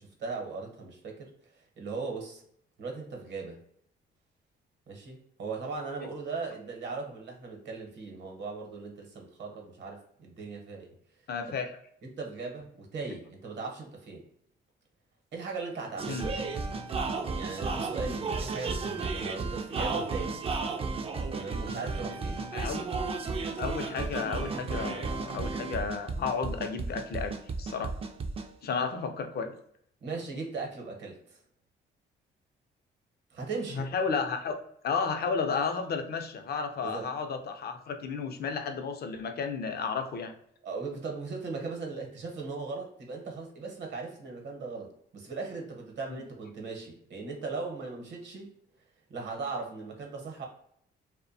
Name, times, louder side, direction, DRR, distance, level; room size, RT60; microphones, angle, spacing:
voice 1, 0.0-2.4 2.8-3.6 4.9-10.9 11.5-11.6 12.0-14.2 15.3-16.3 17.4-20.4 21.3-22.4 30.0-31.4 33.3-33.8 36.8-37.1 40.6-48.5 49.1-50.5, right 4 dB, 65° right, 1 dB, 0.9 m, -38 dB
voice 2, 11.3-11.7 16.1-16.3 22.5-22.8 23.6-27.3 27.6-27.9 28.6-29.5 33.7-34.5 34.8-40.3 46.1-46.2, left 5 dB, 55° left, 6 dB, 0.5 m, -32 dB
sound 1, 16.0-28.5, right 4 dB, 30° right, 0.3 m, -33 dB
2.6 x 2.1 x 2.5 m, 0.67 s
cardioid pair, 90°, 20 cm